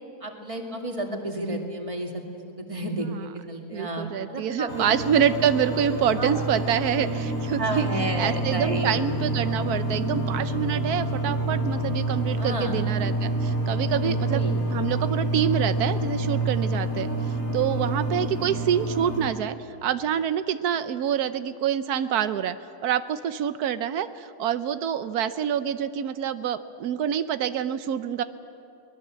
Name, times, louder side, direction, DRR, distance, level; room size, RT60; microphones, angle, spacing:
voice 1, 0.2-4.8 6.2-6.3 7.6-9.0 12.3-12.8 14.0-14.6, right 1 dB, 20° right, 2 dB, 2.3 m, -32 dB
voice 2, 3.7-7.9 8.2-14.4 14.7-19.6 19.8-22.6 22.8-28.2, right 9 dB, 90° right, 12 dB, 1.3 m, -26 dB
sound 1, 4.7-19.3, right 2 dB, 65° left, 4.2 m, -28 dB
23.5 x 20.0 x 7.5 m, 2.6 s
omnidirectional pair, 1.6 m